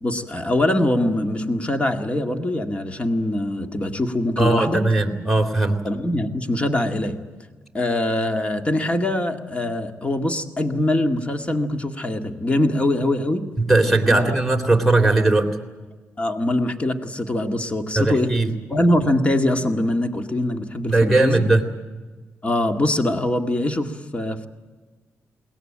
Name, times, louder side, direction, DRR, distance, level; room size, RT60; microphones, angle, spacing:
voice 1, 0.0-4.8 5.8-7.1 7.7-13.4 14.1-14.4 16.2-18.3 18.7-21.5 22.4-24.5, left 1 dB, 25° left, 6 dB, 2.0 m, -23 dB
voice 2, 4.4-5.8 13.6-15.5 17.9-18.5 20.8-21.6, right 2 dB, ahead, 1 dB, 3.4 m, -19 dB
22.0 x 19.0 x 9.0 m, 1.3 s
cardioid pair, 95°, 5 cm